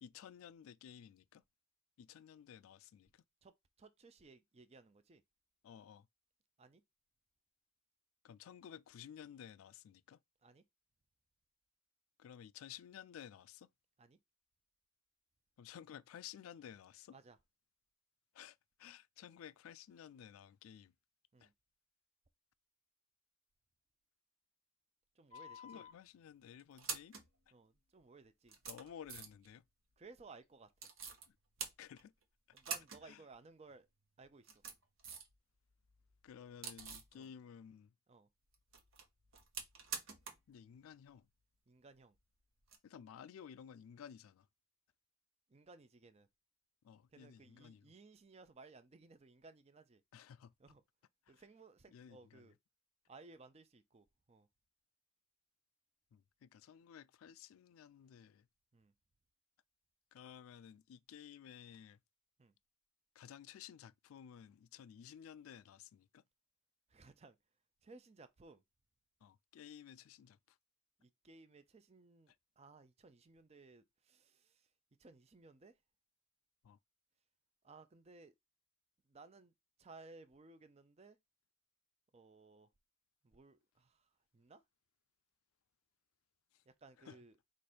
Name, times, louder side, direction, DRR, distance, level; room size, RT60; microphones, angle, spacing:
voice 1, 0.0-1.4 2.0-3.2 5.6-6.1 8.2-10.2 12.2-13.7 15.6-17.2 18.3-20.9 21.4-21.5 25.5-27.2 28.7-29.6 31.8-32.1 33.0-33.2 36.2-37.9 40.5-41.3 42.8-44.5 46.8-47.9 50.1-50.5 51.3-51.4 51.9-52.5 56.1-58.4 60.1-62.0 63.2-66.2 69.2-70.4 76.6-76.8 87.0-87.2, left 8 dB, 85° left, 0.3 m, -54 dB
voice 2, 3.4-5.2 6.6-6.8 10.4-10.6 14.0-14.2 17.1-17.4 21.3-21.5 25.2-25.8 27.5-28.6 30.0-30.7 32.5-33.9 34.2-34.5 37.1-37.3 38.1-38.3 41.7-42.2 45.5-46.3 47.1-50.0 50.6-50.8 51.3-52.6 53.1-54.5 58.7-58.9 62.4-62.6 66.9-67.4 67.8-68.6 71.0-74.7 75.0-75.7 77.6-78.3 79.1-79.5 79.8-81.2 82.1-82.7 83.2-84.6 86.7-87.3, right 3 dB, 30° right, 0.5 m, -59 dB
sound 1, 25.3-25.9 26.6-27.3 28.0-28.1 28.5-29.5 30.8-31.3 31.6-32.2 32.6-33.0 33.3-33.4 34.3-35.4 35.7-37.1 38.5-40.5 40.8-40.9 42.6-42.8, right 5 dB, 70° right, 1.0 m, -47 dB
4.9 x 2.5 x 4.2 m
head